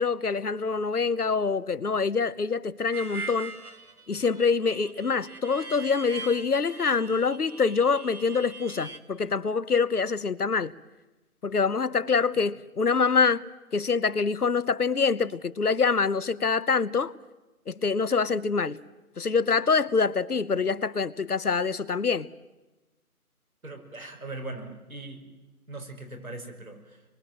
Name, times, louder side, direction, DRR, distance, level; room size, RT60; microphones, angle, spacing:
voice 1, 0.0-3.5 4.1-10.7 11.4-13.4 13.7-17.1 17.7-18.8 19.2-22.3, left 5 dB, 90° left, 1.1 m, -25 dB
Harmonica, 2.9-9.0, right 3 dB, 85° right, 2.4 m, -42 dB
voice 2, 23.6-25.3 25.7-27.0, right 2 dB, 70° right, 5.6 m, -40 dB
27.0 x 23.5 x 7.6 m
figure-of-eight pair, 175°, 44 cm